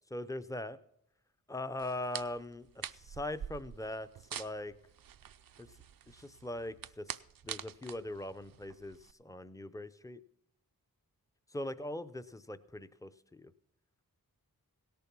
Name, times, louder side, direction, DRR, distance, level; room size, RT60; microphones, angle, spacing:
voice 1, 0.1-0.8 1.5-4.7 5.6-5.7 6.1-10.2 11.5-13.5, left 1 dB, 10° left, 12 dB, 0.6 m, -41 dB
sound 1, 1.8-9.1, right 9 dB, 65° right, 0.5 m, -46 dB
17.0 x 7.0 x 6.0 m, 0.78 s
wide cardioid pair, 50°, 37 cm